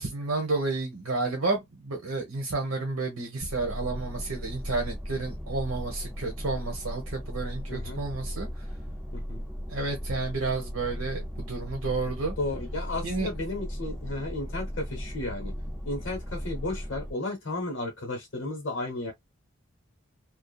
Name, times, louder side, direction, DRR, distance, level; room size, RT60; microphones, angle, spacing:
voice 1, 0.0-8.5 9.7-12.3 13.0-13.3, right 3 dB, 90° right, 0.9 m, -31 dB
sound 1, 3.4-17.1, equal, 5° right, 0.5 m, -36 dB
voice 2, 7.7-8.0 9.1-9.4 12.4-15.5 15.9-19.1, left 2 dB, 60° left, 1.0 m, -33 dB
2.7 x 2.3 x 2.3 m
head